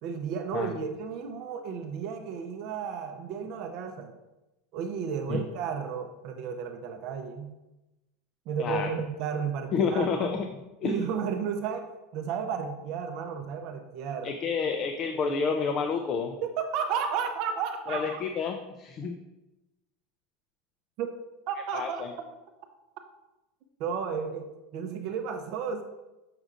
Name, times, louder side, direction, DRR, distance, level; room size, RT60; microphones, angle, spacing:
voice 1, 0.0-4.1 4.7-7.5 8.5-10.4 10.8-14.3 16.4-18.2 21.0-21.1 21.5-22.0 23.8-25.8, right 6 dB, 50° right, 6 dB, 0.6 m, -33 dB
voice 2, 8.6-8.9 9.7-10.5 10.8-11.0 14.2-16.4 17.9-19.1 21.7-22.1, left 5 dB, 30° left, 5 dB, 0.4 m, -29 dB
6.5 x 6.0 x 2.5 m, 1.0 s
supercardioid pair, 160°, 0 cm